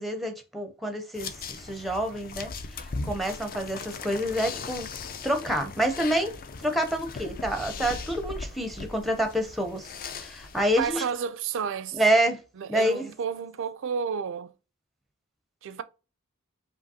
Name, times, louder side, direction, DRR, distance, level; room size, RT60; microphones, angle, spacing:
voice 1, 0.0-4.9 5.2-6.4 6.6-9.9 10.1-11.0 11.9-12.4 12.7-13.1, right 1 dB, ahead, 0.6 m, -27 dB
sound 1, 1.1-11.0, left 4 dB, 45° left, 0.4 m, -39 dB
voice 2, 10.8-12.0 12.6-14.5 15.6-15.8, right 6 dB, 60° right, 0.4 m, -31 dB
5.0 x 2.9 x 2.7 m
head